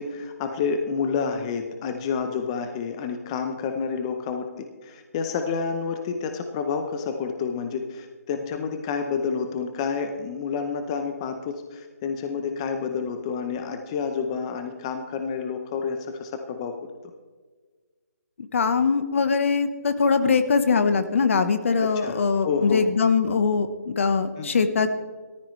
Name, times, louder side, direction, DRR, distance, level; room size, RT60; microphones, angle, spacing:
voice 1, 0.0-16.7 21.8-22.8 24.4-24.6, left 5 dB, 20° left, 6 dB, 0.7 m, -29 dB
voice 2, 18.5-24.9, left 5 dB, 50° left, 10 dB, 1.1 m, -22 dB
15.5 x 14.0 x 3.2 m, 1.4 s
hypercardioid pair, 165°, 9 cm